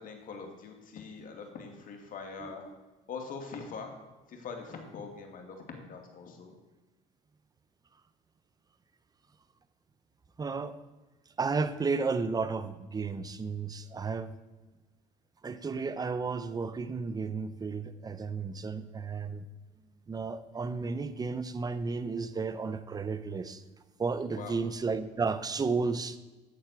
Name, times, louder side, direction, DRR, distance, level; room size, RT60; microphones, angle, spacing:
voice 1, 0.0-2.6 3.1-3.9 4.3-6.6 18.7-18.8 24.3-24.6, left 5 dB, 50° left, 3 dB, 2.4 m, -43 dB
voice 2, 2.4-2.7 10.4-10.8 11.4-14.3 15.4-19.5 20.1-23.6 24.0-26.2, right 4 dB, 20° right, 12 dB, 0.8 m, -33 dB
13.0 x 4.4 x 8.3 m, 1.2 s
supercardioid pair, 100°, 18 cm